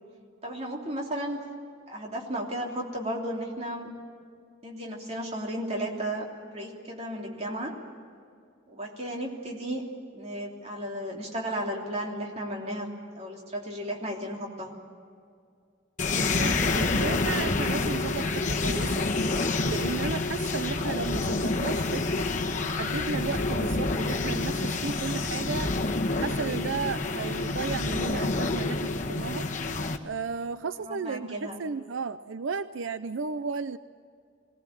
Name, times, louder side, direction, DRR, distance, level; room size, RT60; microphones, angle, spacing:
voice 1, 0.4-1.4 1.9-3.9 4.6-6.3 6.5-7.7 8.7-9.8 10.1-12.9 13.1-14.7 30.8-31.6, right 1 dB, 35° right, 0 dB, 3.1 m, -34 dB
sound 1, 16.0-30.0, left 3 dB, 40° left, 1.3 m, -28 dB
voice 2, 16.1-19.1 19.6-22.3 22.6-25.7 26.2-29.5 30.0-33.8, right 5 dB, 80° right, 13 dB, 0.5 m, -34 dB
22.0 x 18.0 x 8.9 m, 2.3 s
head